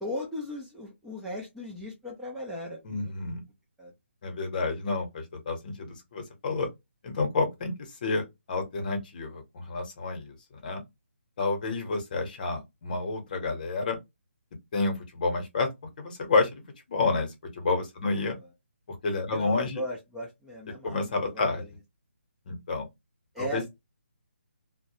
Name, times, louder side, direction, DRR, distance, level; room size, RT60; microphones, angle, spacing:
voice 1, 0.0-3.1 3.8-3.9 18.0-18.2 19.3-21.0 21.2-21.7 23.3-23.7, left 1 dB, 5° right, 0.4 m, -37 dB
voice 2, 2.8-3.4 4.2-6.7 7.0-7.7 8.0-10.3 10.6-10.8 11.4-14.0 14.7-15.7 16.0-16.6 16.9-18.4 18.9-19.8 20.8-21.6 22.5-22.9 23.4-23.6, left 3 dB, 40° left, 0.8 m, -29 dB
2.2 x 2.1 x 2.7 m
figure-of-eight pair, 150°, 7 cm